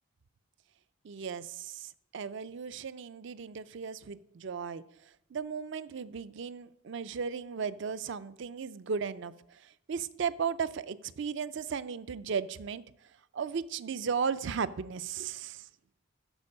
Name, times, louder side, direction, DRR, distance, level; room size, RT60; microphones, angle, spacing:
voice 1, 1.0-4.8 5.3-12.8 13.3-15.7, right 6 dB, 60° right, 15 dB, 0.4 m, -36 dB
13.5 x 4.5 x 5.4 m, 0.79 s
head